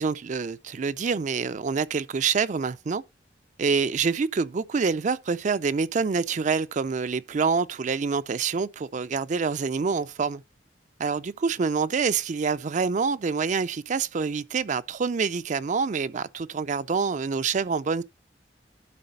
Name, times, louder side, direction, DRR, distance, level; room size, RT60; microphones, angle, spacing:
voice 1, 0.0-3.0 3.6-10.4 11.0-18.0, right 5 dB, 45° right, 0.4 m, -26 dB
11.5 x 4.0 x 5.4 m
head